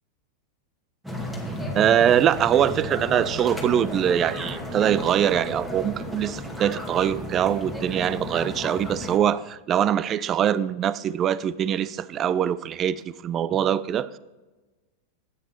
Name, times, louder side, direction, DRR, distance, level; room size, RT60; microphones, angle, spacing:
sound 1, 1.0-9.2, equal, 5° right, 2.4 m, -33 dB
voice 1, 1.7-14.2, right 9 dB, 35° right, 0.5 m, -23 dB
13.5 x 9.2 x 4.4 m
hypercardioid pair, 100°, 0 cm